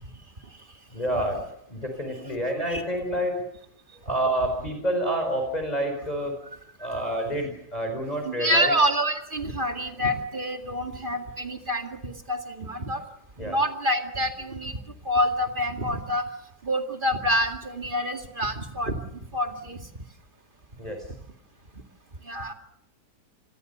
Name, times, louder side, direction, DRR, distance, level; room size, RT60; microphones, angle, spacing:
voice 1, 0.9-1.4 1.7-3.4 4.0-6.4 6.8-8.7 13.4-13.6 20.8-21.0, right 1 dB, 25° left, 4 dB, 4.9 m, -28 dB
voice 2, 8.2-13.0 13.4-16.2 16.6-19.0 19.3-19.9 20.8-20.9 22.2-22.5, equal, 30° right, 4 dB, 2.3 m, -27 dB
27.5 x 22.0 x 6.8 m, 0.76 s
omnidirectional pair, 1.7 m